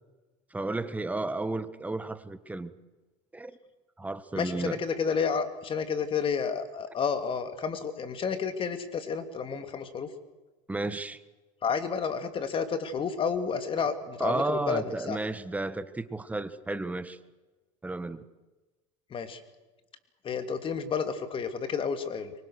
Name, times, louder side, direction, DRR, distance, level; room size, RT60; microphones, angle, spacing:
voice 1, 0.5-2.7 3.3-3.6 4.0-4.8 10.7-11.2 14.2-17.2 17.8-18.2, right 2 dB, 10° right, 1.6 m, -32 dB
voice 2, 4.3-10.1 11.6-15.2 19.1-19.4 20.2-22.3, left 6 dB, 35° left, 2.9 m, -31 dB
25.0 x 23.5 x 6.6 m
supercardioid pair, 105°, 15 cm